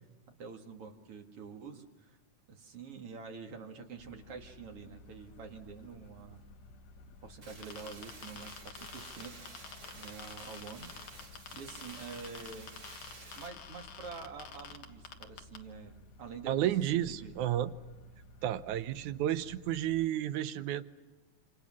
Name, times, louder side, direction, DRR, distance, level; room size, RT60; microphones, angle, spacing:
voice 1, 0.4-2.2 2.5-6.4 7.2-9.3 9.6-10.9 11.5-12.7 13.4-17.4, right 5 dB, 50° right, 4 dB, 2.8 m, -47 dB
sound 1, 4.0-20.1, left 2 dB, 65° left, 2.5 m, -56 dB
sound 2, 7.4-13.5, right 2 dB, 30° right, 4.1 m, -51 dB
sound 3, 7.6-15.6, left 7 dB, 90° left, 3.1 m, -47 dB
voice 2, 16.5-17.7 18.4-20.9, right 12 dB, 85° right, 12 dB, 2.4 m, -31 dB
28.0 x 27.0 x 6.3 m, 1.2 s
omnidirectional pair, 3.4 m